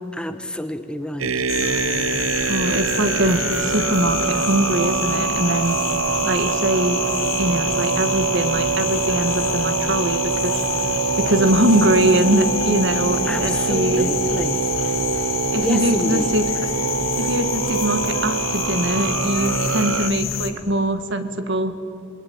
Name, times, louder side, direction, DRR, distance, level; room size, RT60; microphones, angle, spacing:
voice 1, 0.1-1.4 13.3-14.7 15.6-16.4, left 1 dB, 5° left, 9 dB, 1.0 m, -28 dB
sound 1, 1.2-20.1, right 6 dB, 85° right, 0.7 m, -24 dB
sound 2, 1.5-20.5, left 7 dB, 80° left, 2.6 m, -28 dB
voice 2, 2.5-5.8 6.2-7.0 7.4-10.5 11.2-14.1 15.5-16.4 17.2-21.7, right 1 dB, 60° right, 9 dB, 1.9 m, -22 dB
28.0 x 21.5 x 8.9 m, 2.7 s
head